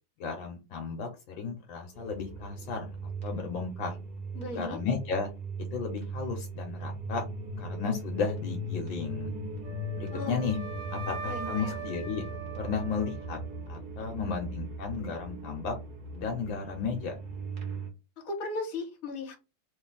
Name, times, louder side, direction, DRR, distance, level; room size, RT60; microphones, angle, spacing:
voice 1, 0.2-3.0 3.2-4.0 4.5-5.3 5.7-7.2 7.6-9.3 10.0-10.6 10.9-12.2 12.6-13.4 13.7-15.7 16.1-17.2, left 5 dB, 75° left, 1.6 m, -34 dB
sound 1, 1.9-17.9, right 2 dB, 30° right, 1.2 m, -39 dB
voice 2, 4.3-4.8 10.1-10.4 11.2-11.9 18.2-19.4, left 2 dB, 45° left, 1.6 m, -36 dB
Wind instrument woodwind instrument, 9.6-13.7, right 5 dB, 60° right, 1.3 m, -41 dB
3.8 x 2.6 x 3.8 m
omnidirectional pair, 2.2 m